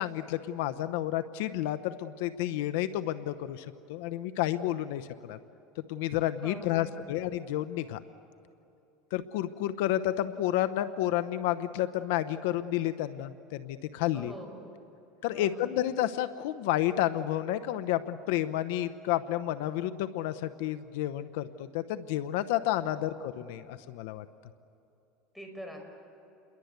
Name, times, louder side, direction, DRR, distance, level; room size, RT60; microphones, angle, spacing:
voice 1, 0.0-5.4 5.9-8.0 9.1-14.3 15.2-24.2, left 13 dB, 75° left, 11 dB, 0.8 m, -31 dB
voice 2, 6.4-7.1 14.1-14.8 15.3-15.7 22.8-23.2 25.3-25.8, equal, ahead, 3 dB, 5.3 m, -45 dB
29.0 x 22.5 x 8.2 m, 2.9 s
supercardioid pair, 140°, 0 cm